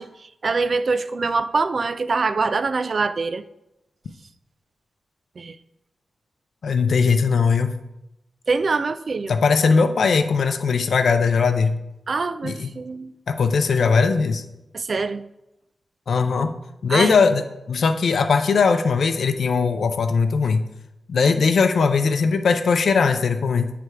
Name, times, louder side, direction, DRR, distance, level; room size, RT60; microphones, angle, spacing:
voice 1, 0.0-3.4 5.4-5.6 8.5-9.3 12.1-13.1 14.7-15.3 16.9-17.2, right 4 dB, 45° right, 0.3 m, -24 dB
voice 2, 6.6-7.7 9.3-11.8 12.4-12.7 13.3-14.4 16.1-16.5 16.8-20.6 21.1-23.7, left 5 dB, 70° left, 0.5 m, -19 dB
9.0 x 3.4 x 4.7 m
wide cardioid pair, 125°, 0 cm